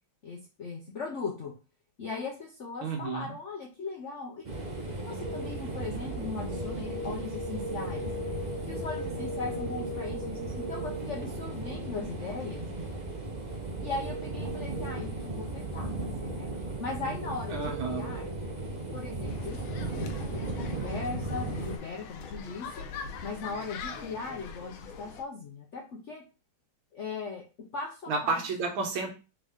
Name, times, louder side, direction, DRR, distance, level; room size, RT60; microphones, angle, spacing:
voice 1, 0.2-1.5 2.0-4.4 4.8-8.1 8.3-12.6 13.8-18.3 18.9-22.8 23.2-26.2 26.9-27.4 27.7-28.4, left 4 dB, 65° left, -1 dB, 0.7 m, -39 dB
voice 2, 2.8-3.4 17.5-18.2 28.1-29.1, right 4 dB, 75° right, 3 dB, 1.8 m, -31 dB
sound 1, 4.4-21.8, right 2 dB, 55° right, 0.5 m, -35 dB
sound 2, 19.3-25.2, left 5 dB, 85° left, 1.5 m, -43 dB
3.9 x 3.6 x 3.5 m, 0.32 s
omnidirectional pair, 2.3 m